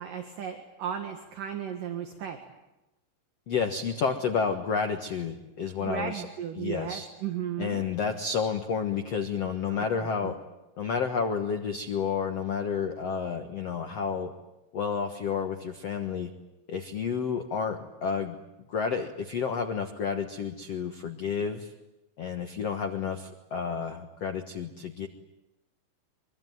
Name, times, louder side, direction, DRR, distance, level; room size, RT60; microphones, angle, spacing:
voice 1, 0.0-2.4 5.8-7.8 9.7-10.3, right 8 dB, 55° right, 5 dB, 2.9 m, -35 dB
voice 2, 3.5-6.2 6.6-7.1 7.6-10.4 10.8-14.3 14.7-16.3 16.7-18.4 18.7-21.7 22.2-25.1, left 6 dB, 85° left, 6 dB, 1.4 m, -30 dB
24.5 x 24.0 x 9.4 m, 0.97 s
omnidirectional pair, 5.2 m